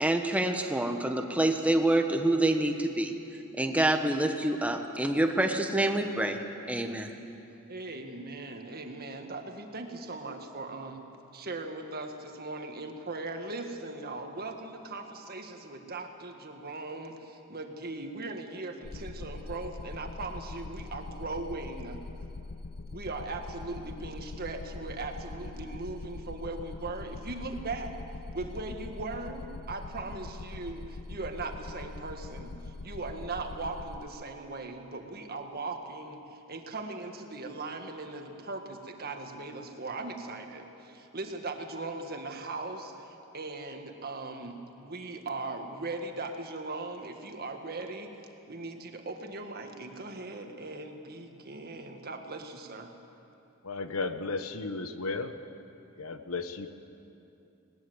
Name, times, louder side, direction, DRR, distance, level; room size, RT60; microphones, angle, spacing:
voice 1, 0.0-3.1 3.6-6.4 6.7-7.1, right 1 dB, 5° right, 5 dB, 1.3 m, -27 dB
voice 2, 7.7-11.0 11.3-22.0 22.9-27.9 28.3-48.1 48.5-52.9, right 3 dB, 45° right, 4 dB, 1.7 m, -39 dB
sound 1, 18.8-34.1, left 3 dB, 45° left, 0.5 m, -42 dB
voice 3, 53.6-55.3 56.0-56.7, left 3 dB, 75° left, 9 dB, 1.1 m, -34 dB
20.0 x 19.5 x 8.0 m, 2.8 s
head